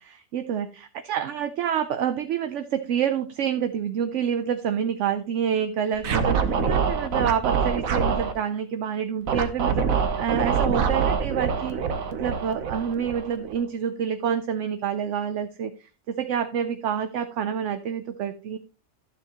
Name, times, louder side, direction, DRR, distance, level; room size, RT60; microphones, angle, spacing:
voice 1, 0.0-11.8 12.1-18.6, right 8 dB, 65° right, 9 dB, 0.9 m, -28 dB
Scratching (performance technique), 6.0-8.3 9.3-13.6, right 6 dB, 80° right, 1.4 m, -25 dB
12.5 x 7.1 x 2.9 m, 0.33 s
omnidirectional pair, 1.4 m